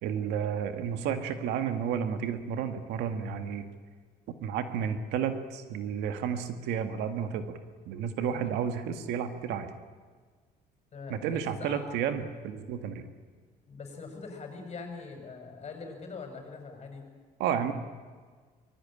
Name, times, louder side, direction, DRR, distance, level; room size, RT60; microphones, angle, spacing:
voice 1, 0.0-3.6 4.4-7.6 7.9-9.7 11.1-13.1 17.4-17.7, right 8 dB, 85° right, 7 dB, 2.0 m, -31 dB
voice 2, 10.9-11.8 13.7-17.0, left 4 dB, 40° left, 4 dB, 7.0 m, -42 dB
24.5 x 21.0 x 9.0 m, 1.6 s
cardioid pair, 110°, 17 cm